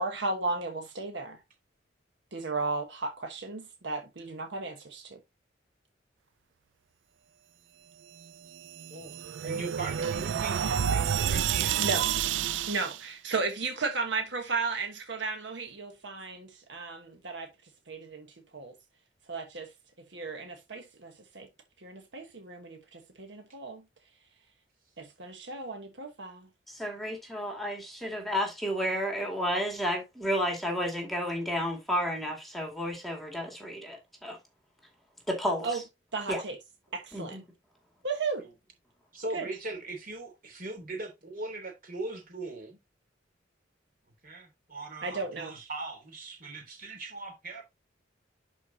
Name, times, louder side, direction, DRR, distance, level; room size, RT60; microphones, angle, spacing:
voice 1, 0.0-1.4 2.3-5.2 11.8-12.1 12.7-17.5 17.9-18.3 18.5-18.7 19.3-19.7 20.1-21.5 21.8-23.8 25.0-26.5 35.6-35.8 36.1-36.5 36.9-37.4 38.0-38.4 39.3-39.4 45.0-45.6, right 3 dB, 70° right, 1.3 m, -34 dB
sound 1, 8.5-13.0, right 8 dB, 85° right, 0.4 m, -29 dB
voice 2, 9.4-11.7 38.4-38.5 39.1-42.8 44.2-47.6, right 2 dB, 50° right, 3.2 m, -40 dB
voice 3, 26.7-34.4 35.3-35.8 36.3-36.4 37.1-37.4, equal, ahead, 2.2 m, -32 dB
11.5 x 4.6 x 2.8 m
head